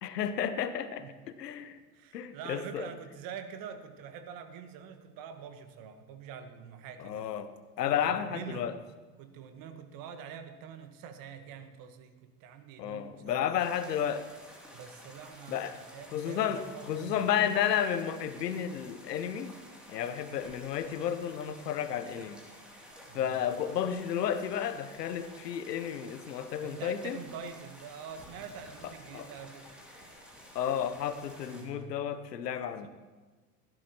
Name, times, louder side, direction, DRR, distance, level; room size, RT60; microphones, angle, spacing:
voice 1, 0.0-1.8 2.1-2.9 7.0-7.5 7.8-8.7 12.8-14.3 15.5-15.8 16.1-19.5 19.9-22.4 23.1-27.2 29.1-29.3 30.5-32.9, left 9 dB, 75° left, 12 dB, 1.0 m, -32 dB
voice 2, 1.9-7.3 7.8-8.7 9.2-13.4 14.7-17.3 23.1-23.5 26.6-29.8 31.5-32.0, right 7 dB, 45° right, 8 dB, 1.3 m, -45 dB
sound 1, 13.6-31.6, equal, ahead, 2.6 m, -52 dB
16.5 x 11.0 x 3.0 m, 1.3 s
hypercardioid pair, 95°, 49 cm